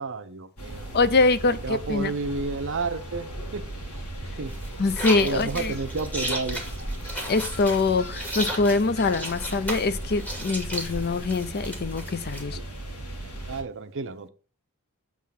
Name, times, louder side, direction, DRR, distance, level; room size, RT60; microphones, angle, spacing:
voice 1, 0.0-0.9 1.4-3.6 4.2-4.5 5.2-6.6 12.5-12.6 13.5-14.3, right 3 dB, 55° right, 0.7 m, -31 dB
sound 1, 0.6-13.6, right 1 dB, 80° left, 2.0 m, -37 dB
voice 2, 0.9-2.1 4.8-5.7 7.3-12.6, left 3 dB, 45° left, 0.5 m, -24 dB
sound 2, 4.5-12.4, right 1 dB, 5° left, 2.0 m, -35 dB
7.4 x 3.7 x 5.7 m
head